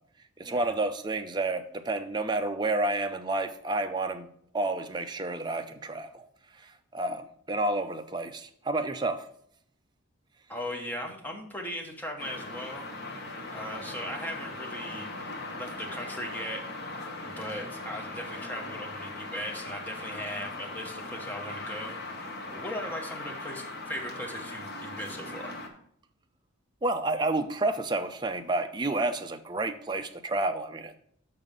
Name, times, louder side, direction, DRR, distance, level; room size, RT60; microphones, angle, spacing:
voice 1, 0.4-4.3 4.5-6.3 6.6-9.3 26.8-31.0, right 2 dB, 20° right, 7 dB, 0.4 m, -30 dB
voice 2, 10.5-12.9 13.2-15.1 15.6-16.7 17.0-25.6, equal, 10° left, 1 dB, 1.0 m, -38 dB
sound 1, 12.2-25.7, left 2 dB, 50° left, 1.0 m, -39 dB
5.9 x 5.5 x 5.4 m, 0.66 s
head